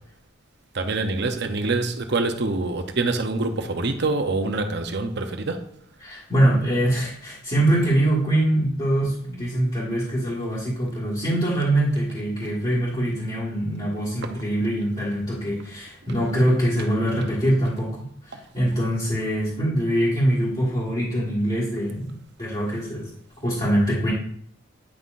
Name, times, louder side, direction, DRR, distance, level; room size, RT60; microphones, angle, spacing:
voice 1, 0.7-5.6 14.2-14.3 18.3-18.4, right 3 dB, 55° right, 6 dB, 0.7 m, -25 dB
voice 2, 6.0-18.0 18.2-22.1 22.4-23.1 23.4-24.1, right 1 dB, 25° left, -8 dB, 1.7 m, -23 dB
9.7 x 5.6 x 2.6 m, 0.67 s
head